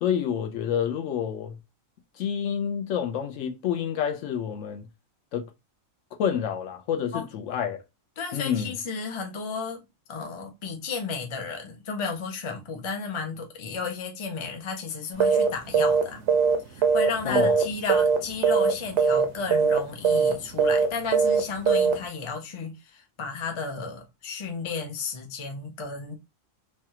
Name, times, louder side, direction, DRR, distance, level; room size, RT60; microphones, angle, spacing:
voice 1, 0.0-1.5 2.2-4.8 5.3-5.5 6.2-7.8 8.3-8.7 17.2-17.6, left 8 dB, 70° left, 0.9 m, -28 dB
voice 2, 8.2-9.8 10.1-16.2 16.7-26.2, left 4 dB, 40° left, 0.4 m, -33 dB
sound 1, 15.2-15.5 15.7-16.0 16.3-17.6 17.9-18.2 18.4-18.7 19.0-19.2 19.5-19.8 20.0-20.3 20.6-20.9 21.1-21.4 21.7-21.9, right 6 dB, 65° right, 0.8 m, -20 dB
3.2 x 2.3 x 2.8 m
omnidirectional pair, 1.4 m